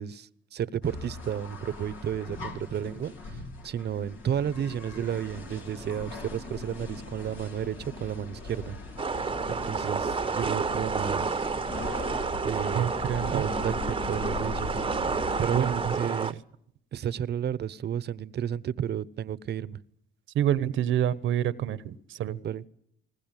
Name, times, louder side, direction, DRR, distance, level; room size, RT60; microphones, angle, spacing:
voice 1, 0.0-8.8 9.5-11.5 12.4-12.9 13.3-15.1 15.4-16.4 16.9-19.8 22.4-22.7, right 9 dB, 55° right, 19 dB, 0.9 m, -32 dB
sound 1, 0.8-16.0, left 2 dB, 80° left, 4.0 m, -39 dB
sound 2, 9.0-16.3, right 5 dB, 25° right, 0.9 m, -30 dB
voice 2, 12.7-13.4 15.5-15.9 16.2-16.3 20.3-22.4, right 11 dB, 80° right, 17 dB, 1.1 m, -28 dB
21.5 x 19.5 x 9.1 m, 0.72 s
cardioid pair, 90°, 20 cm